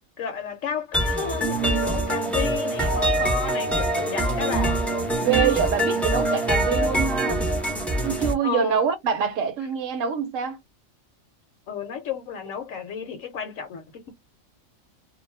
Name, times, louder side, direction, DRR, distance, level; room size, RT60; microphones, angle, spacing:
voice 1, 0.2-4.8 8.4-8.8 11.7-14.1, left 6 dB, 70° left, 1.0 m, -32 dB
sound 1, 0.9-8.3, right 1 dB, ahead, 0.6 m, -24 dB
voice 2, 5.2-7.4 8.0-10.6, right 7 dB, 70° right, 1.0 m, -25 dB
2.4 x 2.2 x 3.2 m
omnidirectional pair, 1.4 m